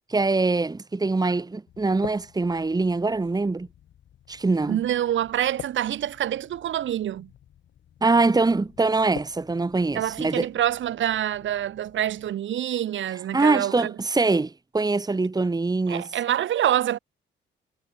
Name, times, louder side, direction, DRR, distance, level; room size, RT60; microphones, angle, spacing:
voice 1, 0.1-3.7 4.3-4.8 8.0-10.5 13.3-16.1, right 3 dB, 20° right, 2.3 m, -23 dB
sound 1, 1.7-12.3, left 11 dB, 70° left, 6.4 m, -48 dB
voice 2, 4.7-7.3 9.9-13.9 15.9-17.0, right 11 dB, 70° right, 5.7 m, -26 dB
cardioid pair, 90°, 20 cm